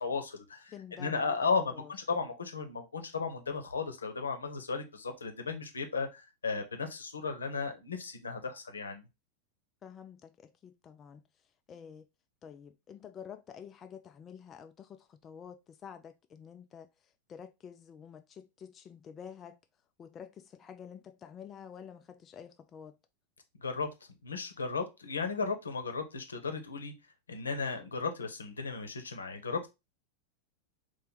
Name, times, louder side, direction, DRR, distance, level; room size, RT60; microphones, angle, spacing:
voice 1, 0.0-9.1 23.6-23.9 24.2-26.9 27.3-29.7, left 4 dB, 75° left, 0.8 m, -35 dB
voice 2, 0.7-1.9 9.8-11.2 11.7-12.1 12.4-16.9 17.3-19.6 20.0-23.0, left 7 dB, 25° left, 0.3 m, -49 dB
4.4 x 2.5 x 4.0 m
figure-of-eight pair, 90°, 0 cm